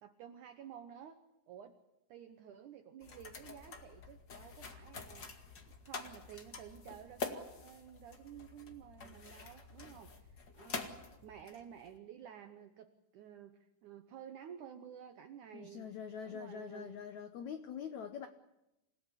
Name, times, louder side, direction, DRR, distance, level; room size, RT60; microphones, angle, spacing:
voice 1, 0.0-1.2 1.5-1.8 2.1-15.9 16.2-17.1, right 9 dB, 70° right, 8 dB, 1.9 m, -52 dB
sound 1, 3.0-12.0, left 4 dB, 40° left, 1.7 m, -47 dB
voice 2, 15.5-18.3, left 7 dB, 85° left, 8 dB, 1.6 m, -44 dB
27.5 x 17.0 x 9.8 m, 0.93 s
omnidirectional pair, 4.9 m